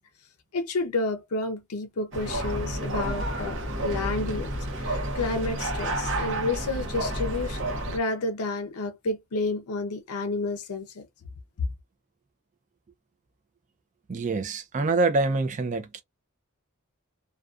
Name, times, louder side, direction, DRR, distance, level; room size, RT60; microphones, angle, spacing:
voice 1, 0.5-4.5 4.8-11.1 11.6-11.7, left 3 dB, 90° left, 0.5 m, -30 dB
sound 1, 2.1-8.0, right 1 dB, 60° right, 0.7 m, -30 dB
voice 2, 14.1-16.0, right 3 dB, 35° right, 0.4 m, -25 dB
2.3 x 2.2 x 2.4 m
head